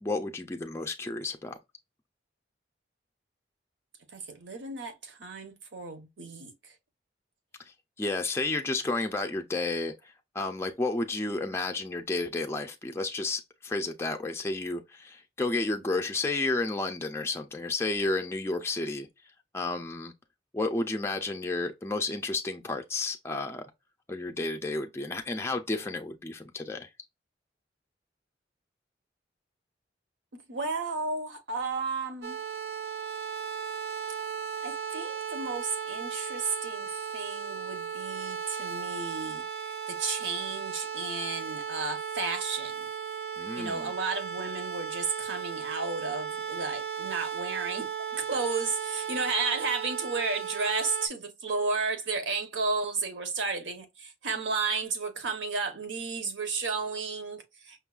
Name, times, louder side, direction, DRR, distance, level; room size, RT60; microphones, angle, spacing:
voice 1, 0.0-1.6 8.0-9.9 10.3-19.1 19.5-20.1 20.5-23.7 24.1-26.9 43.4-43.9, left 2 dB, 15° left, 0.3 m, -31 dB
voice 2, 4.1-6.7 30.5-32.4 34.6-39.4 39.9-42.9 43.5-57.8, right 4 dB, 80° right, 0.9 m, -33 dB
sound 1, 32.2-51.1, right 6 dB, 60° right, 0.5 m, -36 dB
5.3 x 2.2 x 2.3 m
head